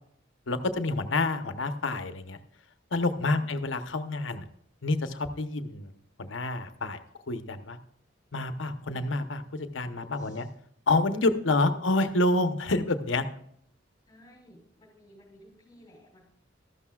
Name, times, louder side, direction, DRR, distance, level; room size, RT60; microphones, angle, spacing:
voice 1, 0.5-2.4 2.9-4.4 4.8-5.9 6.2-7.0 7.3-7.8 8.3-10.5 10.9-13.2, left 2 dB, 90° left, 9 dB, 1.0 m, -28 dB
voice 2, 10.1-10.5 11.2-11.9 14.1-16.2, equal, 20° left, -4 dB, 3.7 m, -55 dB
13.5 x 12.0 x 2.4 m, 0.70 s
head